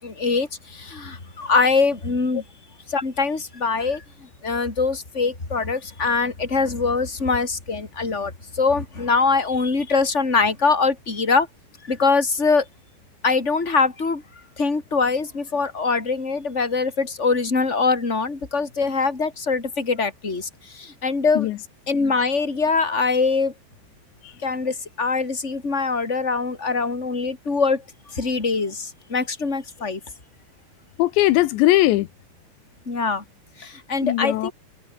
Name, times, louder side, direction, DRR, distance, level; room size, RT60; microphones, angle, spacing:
voice 1, 0.0-2.4 2.9-4.0 4.4-11.5 11.8-12.6 13.2-14.2 14.6-21.5 21.9-23.5 24.4-27.8 28.1-30.0 32.9-33.2 33.6-34.5, left 4 dB, 15° left, 4.1 m, -23 dB
voice 2, 31.0-32.1 34.0-34.5, left 16 dB, 85° left, 3.2 m, -19 dB
omnidirectional pair, 5.1 m